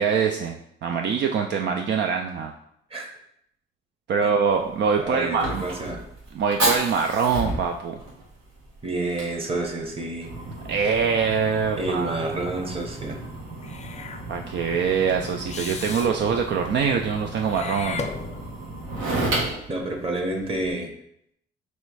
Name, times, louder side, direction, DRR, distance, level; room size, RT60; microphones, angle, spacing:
voice 1, 0.0-2.5 4.1-5.6 6.3-8.0 10.7-12.7 14.3-18.1, right 6 dB, 60° right, 4 dB, 0.4 m, -24 dB
Fire, 4.5-20.7, right 2 dB, 85° right, 1.5 m, -33 dB
voice 2, 5.0-6.0 8.8-10.3 11.8-13.2 19.7-20.9, right 2 dB, 30° right, 2 dB, 1.0 m, -29 dB
Meow / Hiss, 13.6-14.2 15.5-16.1 17.4-18.7, left 5 dB, 35° left, 0.5 m, -35 dB
3.2 x 3.1 x 4.7 m, 0.73 s
cardioid pair, 90°, 20 cm